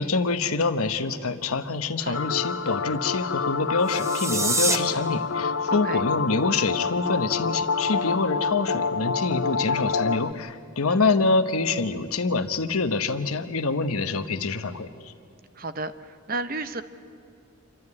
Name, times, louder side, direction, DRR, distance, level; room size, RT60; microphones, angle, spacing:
voice 1, 0.0-14.9, left 3 dB, 85° left, 9 dB, 1.1 m, -26 dB
sound 1, 2.1-10.3, left 5 dB, 60° left, 0.5 m, -27 dB
sound 2, 3.8-4.8, right 3 dB, 15° right, 0.7 m, -26 dB
voice 2, 5.7-6.0 10.9-11.1 15.5-16.8, right 3 dB, 40° right, 11 dB, 0.8 m, -33 dB
27.5 x 13.0 x 9.8 m, 2.5 s
head